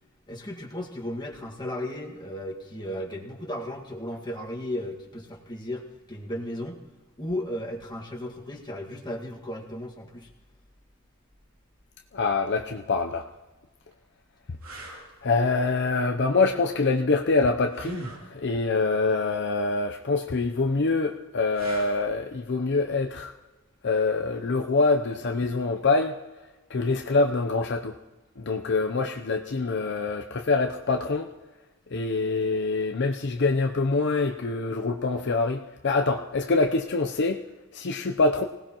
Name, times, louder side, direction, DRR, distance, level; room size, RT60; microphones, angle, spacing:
voice 1, 0.3-5.8 6.1-6.8 7.2-10.3, left 1 dB, 20° left, -1 dB, 1.8 m, -35 dB
voice 2, 12.1-13.3 15.2-18.0 18.3-23.3 23.8-26.1 26.7-27.9 28.4-31.3 31.9-37.4 37.7-38.4, left 3 dB, 55° left, 4 dB, 0.7 m, -25 dB
sound 1, 13.1-13.2 13.9-14.0 14.6-15.1 17.7-18.3 21.5-22.1 25.1-25.3, right 2 dB, 85° right, 3.2 m, -40 dB
25.0 x 18.0 x 3.0 m, 1.2 s
head